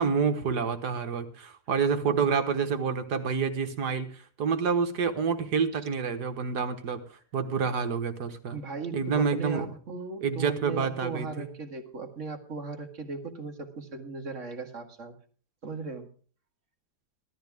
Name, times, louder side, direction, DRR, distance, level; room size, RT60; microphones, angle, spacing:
voice 1, 0.0-7.0 7.3-8.6 8.9-9.7 10.2-11.5, right 5 dB, 75° right, 8 dB, 1.9 m, -28 dB
voice 2, 8.5-15.1 15.6-16.1, right 4 dB, 45° right, 5 dB, 2.1 m, -37 dB
16.0 x 13.0 x 3.5 m, 0.42 s
omnidirectional pair, 1.8 m